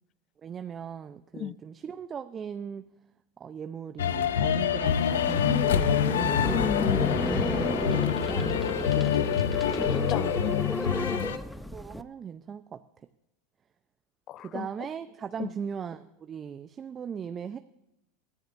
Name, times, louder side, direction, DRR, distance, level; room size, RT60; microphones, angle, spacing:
voice 1, 0.4-2.9 3.4-6.1 6.9-7.3 7.7-9.2 9.9-10.5 11.2-11.3 11.6-12.8 14.4-17.6, right 7 dB, 30° right, 9 dB, 0.6 m, -39 dB
sound 1, 4.0-11.4, left 9 dB, 80° left, 0.7 m, -26 dB
sound 2, 4.9-12.0, left 1 dB, 5° left, 0.7 m, -32 dB
voice 2, 6.5-7.2 9.9-11.3 14.3-14.7 15.4-15.5, left 11 dB, 45° left, 22 dB, 0.4 m, -33 dB
22.5 x 14.5 x 2.6 m, 0.89 s
hypercardioid pair, 95°, 0 cm